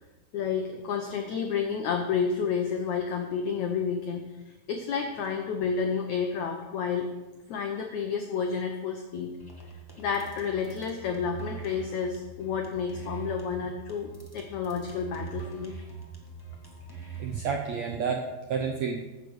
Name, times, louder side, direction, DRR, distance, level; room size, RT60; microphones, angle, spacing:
voice 1, 0.3-7.1 7.5-9.3 10.0-15.8, left 6 dB, 75° left, 4 dB, 1.7 m, -30 dB
sound 1, 9.4-17.4, right 5 dB, 25° left, 0.5 m, -42 dB
voice 2, 17.2-19.0, right 6 dB, 85° right, 2 dB, 1.5 m, -30 dB
15.0 x 6.7 x 6.4 m, 1.1 s
omnidirectional pair, 4.5 m